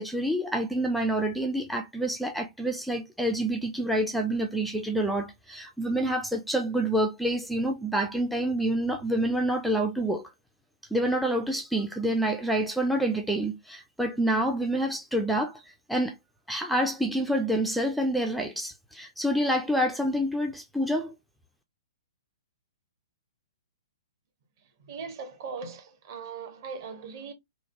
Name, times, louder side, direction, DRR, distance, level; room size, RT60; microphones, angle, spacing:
voice 1, 0.0-10.3 10.9-15.6 15.9-16.1 16.5-21.1, right 1 dB, ahead, 0.3 m, -27 dB
voice 2, 24.8-27.3, right 5 dB, 45° right, 0.8 m, -39 dB
3.1 x 2.0 x 2.5 m
figure-of-eight pair, 115°, 3 cm